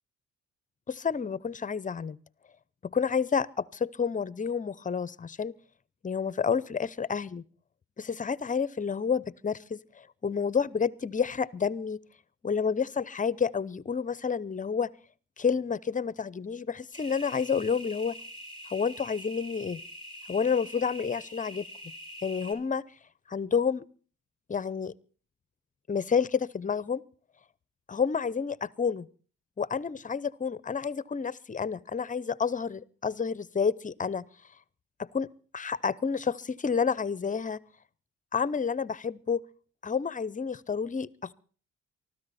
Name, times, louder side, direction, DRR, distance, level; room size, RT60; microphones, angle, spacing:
voice 1, 0.9-2.2 2.8-5.5 6.0-7.4 8.0-12.0 12.4-14.9 15.4-18.2 18.7-19.8 20.3-21.6 22.2-22.8 23.3-23.8 24.5-24.9 25.9-27.0 27.9-29.1 29.6-34.2 35.0-35.3 35.5-37.6 38.3-39.4 39.8-41.3, left 6 dB, 25° left, 21 dB, 0.7 m, -29 dB
sound 1, 16.9-22.5, equal, 15° right, 5.5 m, -44 dB
24.0 x 13.5 x 4.2 m, 0.42 s
cardioid pair, 90°, 30 cm